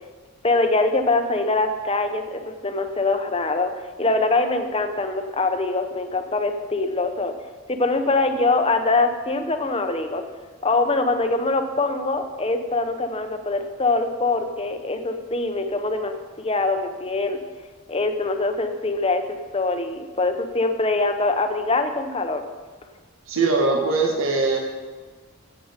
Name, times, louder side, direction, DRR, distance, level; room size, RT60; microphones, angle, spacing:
voice 1, 0.4-3.7 4.0-7.3 7.7-10.2 10.6-17.4 17.9-22.4, left 3 dB, 25° left, 7 dB, 0.9 m, -23 dB
voice 2, 23.3-24.6, right 3 dB, 70° right, 1 dB, 1.7 m, -21 dB
15.5 x 8.0 x 5.2 m, 1.4 s
head